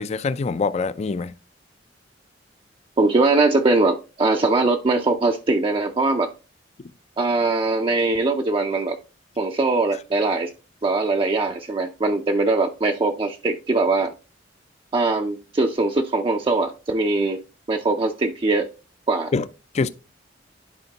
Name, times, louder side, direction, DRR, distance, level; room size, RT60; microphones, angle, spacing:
voice 1, 0.0-1.3 19.3-19.4 19.7-19.9, left 4 dB, 35° left, 0.4 m, -24 dB
voice 2, 3.0-6.3 7.2-9.0 9.4-10.5 10.8-14.1 14.9-17.4 17.7-18.7 19.1-19.3, right 3 dB, 30° right, 0.4 m, -21 dB
10.5 x 4.3 x 2.8 m
head